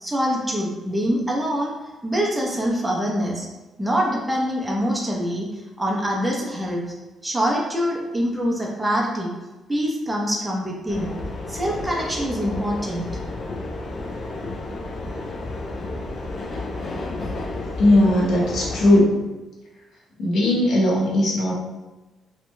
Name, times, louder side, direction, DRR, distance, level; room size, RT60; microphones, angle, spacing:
voice 1, 0.0-1.7 2.0-3.5 3.8-5.5 5.8-6.8 7.2-9.3 9.7-11.1 11.5-13.1, equal, 10° right, -2 dB, 0.7 m, -24 dB
sound 1, 10.9-19.0, left 2 dB, 50° left, 0.4 m, -31 dB
voice 2, 17.8-19.2 20.2-21.5, left 1 dB, 70° left, -4 dB, 0.9 m, -18 dB
2.9 x 2.8 x 2.2 m, 1.1 s
cardioid pair, 90°, 0 cm